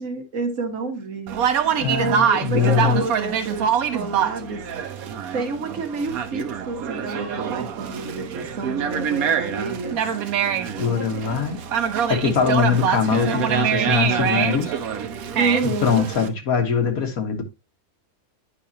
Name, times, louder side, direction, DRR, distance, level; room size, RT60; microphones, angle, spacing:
voice 1, 0.0-4.6 5.3-10.0 15.4-16.0, right 3 dB, 65° right, 1.7 m, -29 dB
Conversation, 1.3-16.3, right 8 dB, 80° right, 1.2 m, -25 dB
voice 2, 1.8-3.0 10.8-11.6 12.1-14.8 15.6-17.4, left 6 dB, 80° left, 1.8 m, -22 dB
9.3 x 5.0 x 2.8 m
omnidirectional pair, 1.5 m